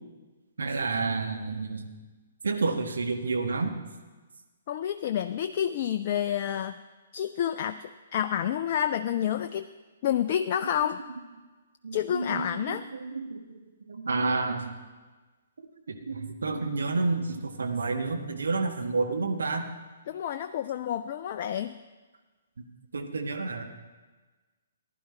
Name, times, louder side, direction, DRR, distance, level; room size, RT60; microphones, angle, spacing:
voice 1, 0.6-1.9 2.4-3.7 10.8-10.9 11.8-13.6 13.9-14.7 15.9-19.6 22.9-23.6, right 3 dB, 60° right, 4 dB, 1.3 m, -30 dB
voice 2, 4.7-6.8 7.1-9.7 10.0-11.0 11.9-12.8 20.1-21.8, left 10 dB, 40° left, 9 dB, 0.4 m, -29 dB
15.0 x 11.0 x 4.3 m, 1.3 s
figure-of-eight pair, 125°, 0 cm